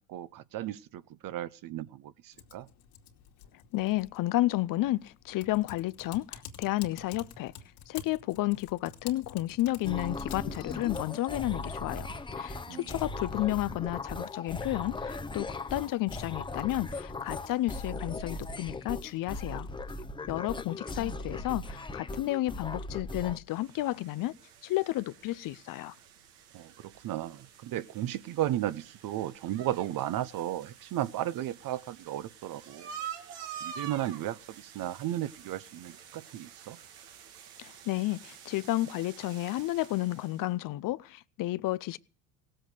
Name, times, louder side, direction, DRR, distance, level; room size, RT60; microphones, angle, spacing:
voice 1, 0.1-2.7 12.7-13.0 26.5-32.9 33.6-36.8, right 13 dB, 45° right, 0.8 m, -35 dB
Typing, 2.3-20.4, left 8 dB, 75° left, 2.5 m, -53 dB
voice 2, 3.7-7.5 7.9-12.1 12.4-19.7 20.3-24.3 24.6-25.9 37.6-42.0, left 16 dB, 45° left, 0.6 m, -31 dB
sound 1, 9.8-23.4, left 2 dB, 10° left, 0.8 m, -38 dB
sound 2, 23.5-40.5, right 8 dB, 80° right, 2.0 m, -48 dB
17.5 x 7.8 x 6.6 m
supercardioid pair, 95°, 46 cm